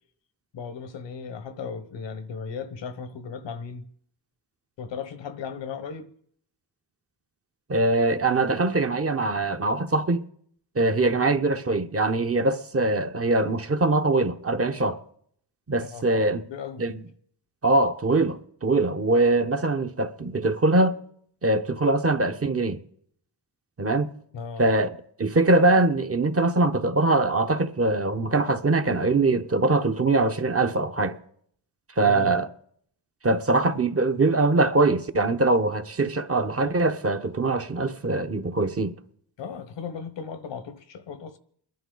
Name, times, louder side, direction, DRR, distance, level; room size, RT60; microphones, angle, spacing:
voice 1, 0.5-3.8 4.8-6.1 10.9-11.2 15.8-16.8 24.3-24.7 32.0-32.3 39.4-41.4, left 6 dB, 80° left, 1.2 m, -36 dB
voice 2, 7.7-10.2 10.7-15.0 15.7-16.4 16.8-17.0 17.6-21.0 21.4-22.8 23.8-24.1 24.6-31.2 32.0-32.5 33.2-38.9, right 2 dB, 35° right, 1.0 m, -22 dB
29.5 x 11.0 x 3.9 m
cardioid pair, 85°, 43 cm